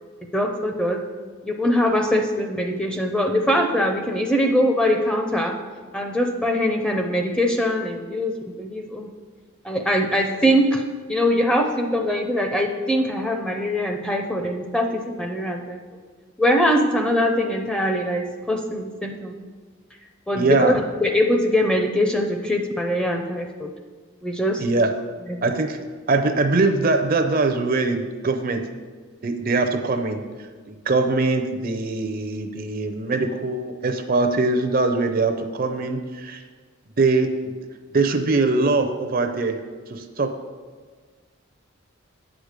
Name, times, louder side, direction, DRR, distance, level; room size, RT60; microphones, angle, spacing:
voice 1, 0.3-1.0 1.4-5.5 5.9-9.1 9.6-10.8 11.1-15.8 16.4-19.4 20.3-20.7 21.0-23.7 24.2-24.6 25.3-25.4, equal, 5° left, 3 dB, 0.5 m, -22 dB
voice 2, 20.3-20.7 24.6-24.9 25.4-25.8 26.1-28.6 29.2-30.2 30.7-36.4 37.0-37.5 37.9-39.6 39.9-40.3, right 3 dB, 45° right, 6 dB, 0.5 m, -22 dB
8.5 x 5.0 x 6.5 m, 1.5 s
head